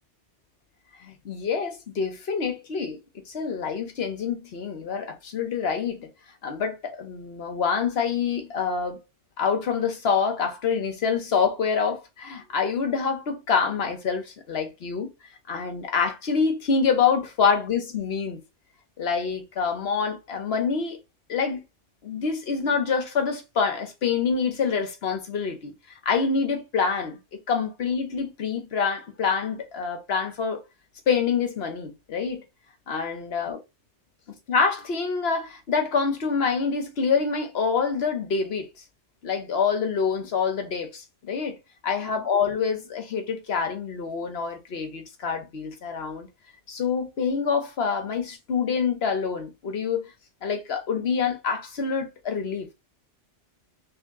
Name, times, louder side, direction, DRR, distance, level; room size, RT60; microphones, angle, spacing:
voice 1, 1.0-3.0 3.3-6.1 6.4-9.0 9.4-15.1 15.5-18.4 19.0-21.0 21.3-21.6 22.0-25.7 26.0-27.2 27.5-30.6 31.1-32.4 32.9-33.6 34.5-38.7 39.2-41.6 41.8-46.3 46.7-50.1 50.4-52.7, left 5 dB, 60° left, 1.1 m, -26 dB
3.2 x 2.8 x 3.6 m
omnidirectional pair, 1.2 m